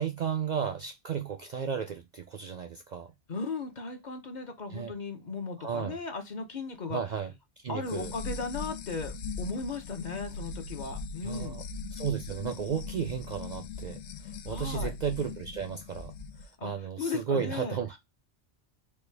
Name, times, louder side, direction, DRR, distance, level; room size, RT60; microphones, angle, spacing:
voice 1, 0.0-3.1 4.7-4.9 5.6-6.0 6.9-8.1 11.2-11.6 11.9-16.1 16.4-18.0, right 7 dB, 60° right, 0.5 m, -34 dB
voice 2, 3.3-7.0 7.7-11.6 14.5-14.9 16.6-17.8, left 4 dB, 45° left, 0.8 m, -36 dB
sound 1, 7.8-16.5, left 4 dB, 90° left, 0.9 m, -40 dB
4.4 x 2.3 x 3.2 m
omnidirectional pair, 1.2 m